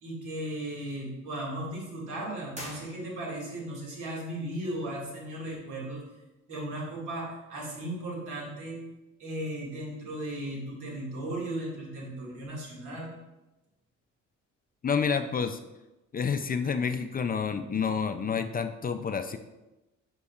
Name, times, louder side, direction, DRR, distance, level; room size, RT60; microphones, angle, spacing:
voice 1, 0.0-6.0 6.5-8.8 9.2-13.1, right 1 dB, 80° right, -3 dB, 2.1 m, -36 dB
sound 1, 2.5-3.6, equal, 20° right, 1.6 m, -44 dB
voice 2, 14.8-15.6 16.1-19.4, left 6 dB, 30° left, 8 dB, 0.4 m, -29 dB
8.3 x 5.4 x 2.4 m, 1.0 s
cardioid pair, 90°, 30 cm